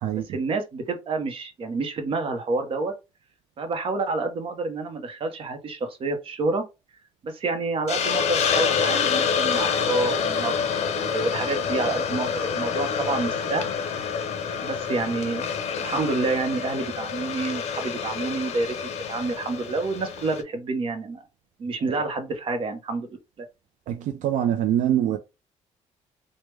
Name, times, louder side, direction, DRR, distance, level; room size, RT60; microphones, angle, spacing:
voice 1, 0.3-2.9 3.6-6.6 7.2-13.7 14.6-15.4 15.8-18.8 19.1-21.2 21.6-23.2, right 3 dB, 45° right, 0.7 m, -28 dB
Hiss, 7.9-20.4, left 6 dB, 60° left, 0.5 m, -27 dB
voice 2, 23.9-25.2, right 10 dB, 75° right, 0.4 m, -24 dB
3.3 x 2.1 x 3.1 m
cardioid pair, 130°, 13 cm